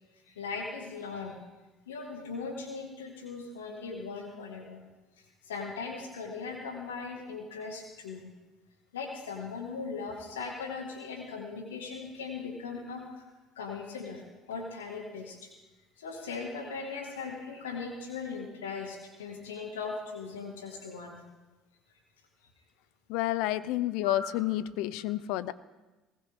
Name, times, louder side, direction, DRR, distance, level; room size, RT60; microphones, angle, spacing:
voice 1, 0.3-1.4 1.9-4.9 5.4-8.3 8.9-13.2 13.6-15.5 16.0-21.2 24.0-24.4, left 4 dB, 85° left, 2 dB, 2.1 m, -39 dB
voice 2, 23.1-25.5, left 15 dB, 70° left, 16 dB, 0.6 m, -30 dB
20.0 x 17.5 x 3.7 m, 1.1 s
hypercardioid pair, 65°, 0 cm